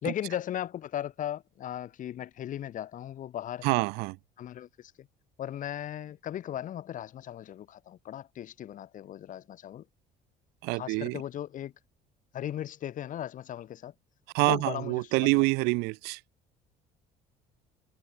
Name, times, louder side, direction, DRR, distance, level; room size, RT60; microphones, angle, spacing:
voice 1, 0.0-3.8 4.4-5.1 5.4-9.8 10.7-11.7 12.3-13.9 14.4-15.4, left 11 dB, 55° left, 3.3 m, -37 dB
voice 2, 3.6-4.2 10.6-11.2 14.3-16.2, right 27 dB, 85° right, 0.9 m, -26 dB
cardioid pair, 110°, 17 cm